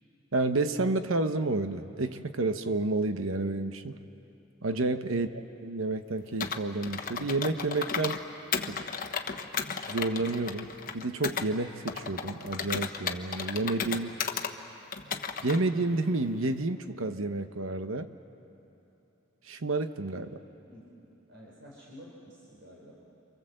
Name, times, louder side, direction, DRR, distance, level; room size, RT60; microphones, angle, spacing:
voice 1, 0.3-3.9 4.6-8.2 8.7-8.8 9.9-14.1 15.4-18.1 19.4-20.4, right 2 dB, 85° right, 9 dB, 1.0 m, -30 dB
Computer keyboard, 6.4-8.2 8.5-11.5 11.9-14.5 14.9-15.6, left 6 dB, 45° left, 1.1 m, -34 dB
voice 2, 20.6-22.9, equal, 60° right, -4 dB, 4.3 m, -51 dB
28.0 x 25.5 x 7.8 m, 3.0 s
head